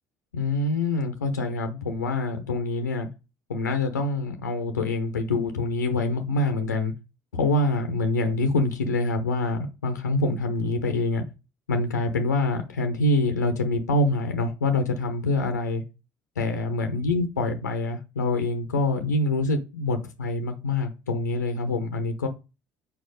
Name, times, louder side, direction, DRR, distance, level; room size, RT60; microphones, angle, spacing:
voice 1, 0.3-3.1 3.5-6.9 7.3-11.2 11.7-15.8 16.4-22.3, left 2 dB, 90° left, 0.7 m, -25 dB
4.6 x 4.4 x 5.0 m
hypercardioid pair, 60°, 9 cm